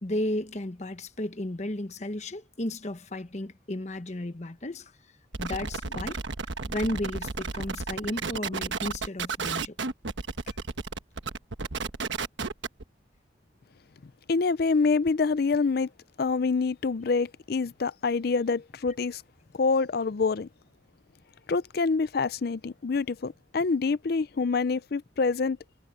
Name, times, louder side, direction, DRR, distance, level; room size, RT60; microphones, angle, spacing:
voice 1, 0.0-4.9 5.4-6.2 6.7-9.8 10.5-10.6, left 1 dB, 40° left, 1.1 m, -33 dB
sound 1, 5.3-12.8, right 4 dB, 80° right, 1.3 m, -33 dB
voice 2, 14.3-15.9 16.2-19.2 19.5-20.5 21.5-25.6, left 4 dB, 55° left, 0.5 m, -26 dB
head